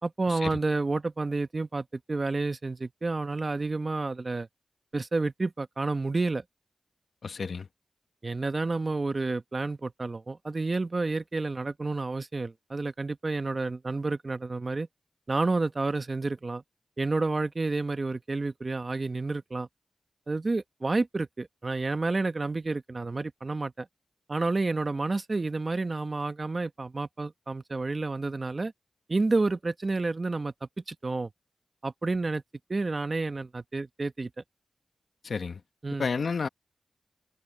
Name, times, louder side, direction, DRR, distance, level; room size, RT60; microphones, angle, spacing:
voice 1, 0.0-4.5 4.9-6.4 8.2-14.9 15.3-16.6 17.0-19.7 20.3-23.9 24.3-28.7 29.1-30.5 30.9-31.3 31.8-32.4 32.7-34.3 35.8-36.1, right 3 dB, 45° right, 1.3 m, -30 dB
voice 2, 7.2-7.7 35.2-35.6 36.0-36.5, left 5 dB, 75° left, 1.2 m, -31 dB
cardioid pair, 45°, 0 cm